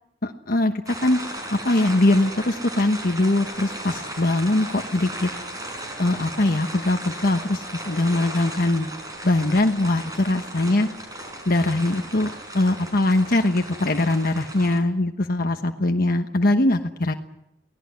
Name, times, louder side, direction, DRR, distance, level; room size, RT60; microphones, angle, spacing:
voice 1, 0.2-1.2 1.5-5.3 6.0-8.9 9.2-10.9 11.5-17.1, left 2 dB, 55° left, 5 dB, 1.2 m, -22 dB
sound 1, 0.9-14.8, right 1 dB, 20° right, 6.0 m, -36 dB
24.0 x 18.0 x 9.7 m, 0.85 s
head